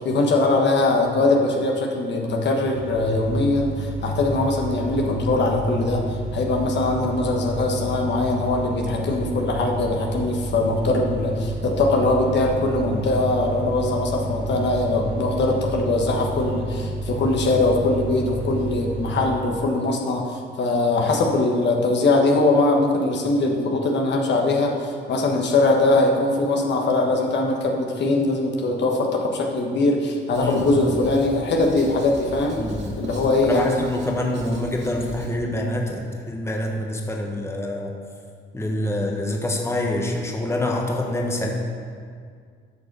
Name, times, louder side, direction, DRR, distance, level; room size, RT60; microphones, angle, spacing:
voice 1, 0.0-6.0 6.3-32.6 33.0-33.8, left 2 dB, 65° left, 0 dB, 1.3 m, -21 dB
sound 1, 2.7-19.3, right 2 dB, 90° right, 1.2 m, -31 dB
Writing, 30.3-35.3, equal, 65° right, 2.3 m, -38 dB
voice 2, 32.6-32.9 33.4-37.9 38.5-41.5, left 1 dB, 15° left, 0 dB, 1.2 m, -26 dB
8.1 x 5.2 x 6.7 m, 2.1 s
cardioid pair, 90°, 20 cm